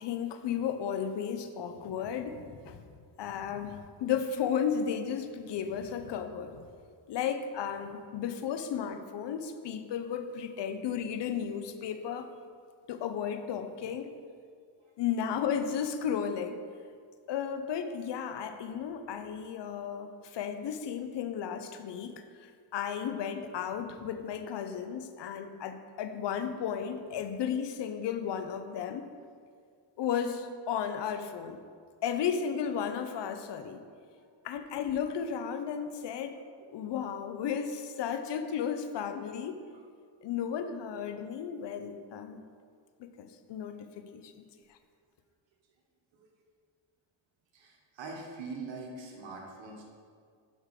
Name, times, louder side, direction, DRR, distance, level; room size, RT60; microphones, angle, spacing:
voice 1, 0.0-2.8 3.2-6.6 7.1-12.3 12.9-14.1 15.0-16.6 17.3-22.1 22.7-29.1 30.0-31.6 32.0-33.8 34.4-36.3 36.7-39.6 40.2-42.4 43.0-44.3, left 8 dB, 60° left, 8 dB, 0.8 m, -34 dB
voice 2, 47.5-49.8, right 3 dB, 65° right, 0 dB, 1.5 m, -44 dB
6.6 x 5.3 x 4.9 m, 2.1 s
cardioid pair, 75°, 48 cm